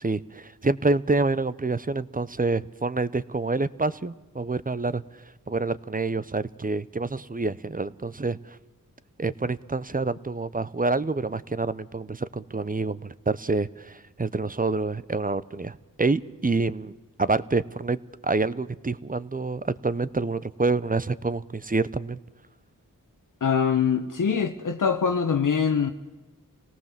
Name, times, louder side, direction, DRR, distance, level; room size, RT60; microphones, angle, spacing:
voice 1, 0.0-5.0 5.5-8.6 9.2-18.0 18.2-22.2, right 3 dB, 25° right, 0.8 m, -27 dB
voice 2, 23.4-25.9, left 6 dB, 60° left, 1.2 m, -23 dB
27.0 x 18.0 x 7.5 m
wide cardioid pair, 75°, 34 cm